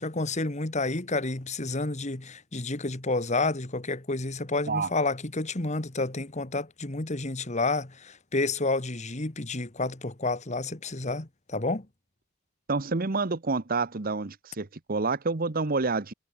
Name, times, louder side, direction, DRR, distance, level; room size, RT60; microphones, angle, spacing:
voice 1, 0.0-11.9, left 3 dB, 35° left, 1.6 m, -30 dB
voice 2, 12.7-16.1, right 3 dB, 45° right, 1.0 m, -28 dB
head